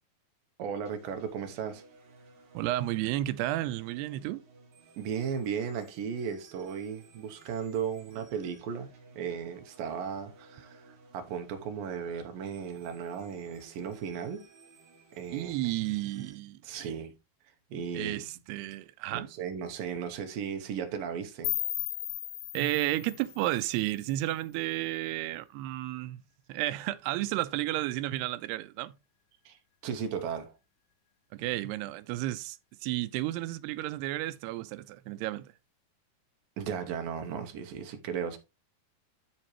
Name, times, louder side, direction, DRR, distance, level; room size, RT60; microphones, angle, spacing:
voice 1, 0.6-1.8 5.0-8.9 9.2-14.5 15.2-15.6 16.6-17.1 17.7-18.3 19.1-21.5 29.5-30.5 36.6-38.4, right 7 dB, 70° right, 2.5 m, -36 dB
sound 1, 0.9-16.3, right 3 dB, 55° right, 3.0 m, -57 dB
voice 2, 2.5-4.4 15.3-16.9 17.9-19.3 22.5-26.2 26.5-29.0 31.3-35.5, right 16 dB, 90° right, 2.6 m, -32 dB
sound 2, 21.4-24.4, left 15 dB, 80° left, 1.9 m, -36 dB
12.5 x 4.4 x 3.2 m
omnidirectional pair, 4.6 m